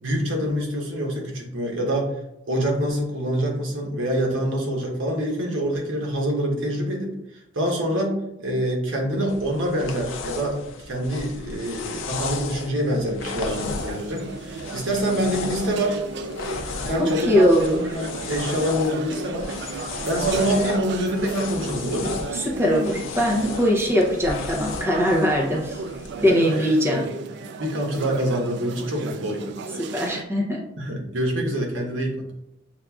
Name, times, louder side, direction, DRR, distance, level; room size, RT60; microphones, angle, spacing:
voice 1, 0.0-2.1 2.5-7.1 7.5-16.0 16.9-19.5 20.1-22.2 26.3-27.1 27.6-29.5 30.8-32.3, equal, 80° right, 0 dB, 1.0 m, -26 dB
sound 1, 9.3-26.3, left 4 dB, 80° left, 0.5 m, -35 dB
sound 2, 13.4-30.2, right 4 dB, 60° right, 0.3 m, -34 dB
voice 2, 17.0-17.8 22.3-25.8 26.2-27.0 29.9-30.6, equal, 15° right, -2 dB, 0.6 m, -21 dB
7.1 x 2.5 x 2.3 m, 0.88 s
head